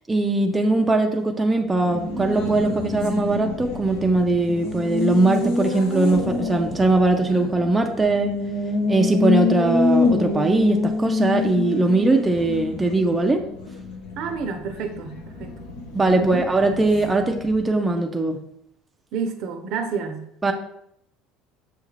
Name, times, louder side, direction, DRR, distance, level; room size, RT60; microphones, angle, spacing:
voice 1, 0.1-8.3 8.9-13.4 15.9-18.4 20.4-20.5, right 2 dB, 10° right, 3 dB, 0.4 m, -20 dB
Race car auto racing, 1.6-17.9, left 3 dB, 80° left, 0.9 m, -27 dB
voice 2, 14.2-15.5 16.2-16.4 19.1-20.2, right 5 dB, 60° right, 6 dB, 0.5 m, -29 dB
6.2 x 2.3 x 3.2 m, 0.75 s
supercardioid pair, 120°, 0 cm